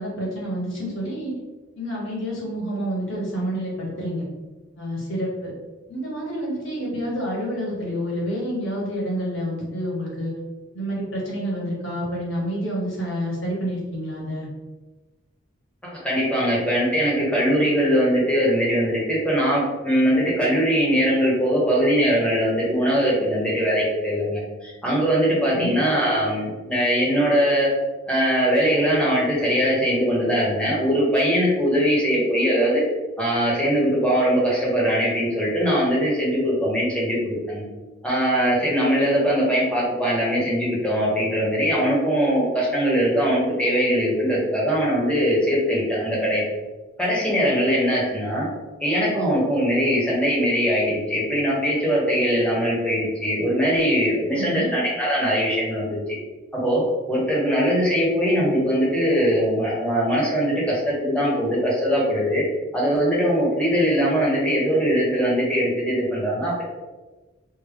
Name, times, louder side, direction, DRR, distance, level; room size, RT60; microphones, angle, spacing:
voice 1, 0.0-1.3 1.7-4.2 4.8-5.5 5.9-10.3 10.7-14.5 25.5-25.8 54.3-54.7, equal, 70° left, -4 dB, 1.3 m, -28 dB
voice 2, 15.8-27.7 28.1-32.8 33.2-37.6 38.0-46.5 47.0-48.5 48.8-56.0 56.5-56.8 57.1-62.4 62.7-66.6, equal, 5° left, -5 dB, 0.9 m, -21 dB
3.5 x 2.1 x 3.5 m, 1.2 s
head